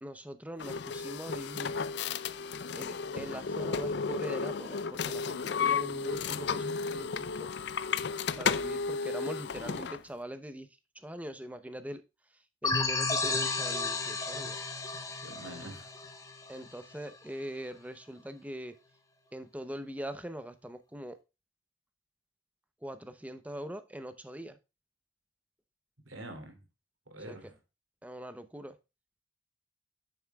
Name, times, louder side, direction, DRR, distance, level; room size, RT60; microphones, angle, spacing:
voice 1, 0.0-1.7 2.7-7.3 8.4-10.7 11.0-12.0 12.6-14.6 16.5-18.7 19.3-21.2 22.8-24.6 27.3-27.4 28.0-28.7, equal, 5° right, 10 dB, 0.6 m, -42 dB
sound 1, 0.6-10.0, left 5 dB, 60° left, 0.4 m, -33 dB
sound 2, 12.6-17.1, left 3 dB, 15° left, 1.0 m, -33 dB
voice 2, 15.2-15.9 26.0-26.7 27.1-27.6, right 1 dB, 85° right, 4 dB, 2.9 m, -45 dB
9.2 x 7.4 x 2.3 m, 0.27 s
head